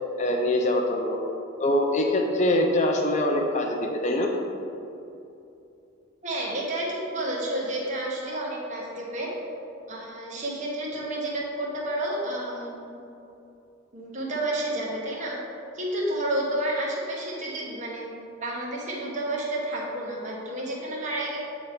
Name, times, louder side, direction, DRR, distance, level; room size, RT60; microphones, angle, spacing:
voice 1, 0.2-1.2 1.6-4.3, left 1 dB, 35° left, 2 dB, 0.5 m, -23 dB
voice 2, 6.2-9.3 9.9-13.0 13.9-15.4 15.7-18.1 18.4-21.4, right 1 dB, 35° right, -4 dB, 1.1 m, -30 dB
8.1 x 3.0 x 4.9 m, 2.7 s
head